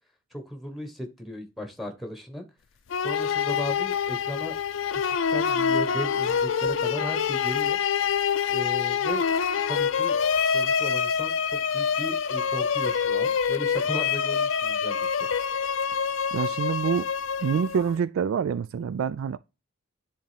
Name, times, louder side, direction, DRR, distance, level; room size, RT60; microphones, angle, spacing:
voice 1, 0.3-2.4 3.0-4.5 4.9-7.8 8.5-9.3 9.7-10.2 10.5-15.3, equal, ahead, 1.1 m, -36 dB
sound 1, 2.9-18.0, left 7 dB, 70° left, 0.5 m, -26 dB
voice 2, 16.3-17.1 17.4-19.4, right 7 dB, 85° right, 0.3 m, -26 dB
10.5 x 3.6 x 3.3 m
head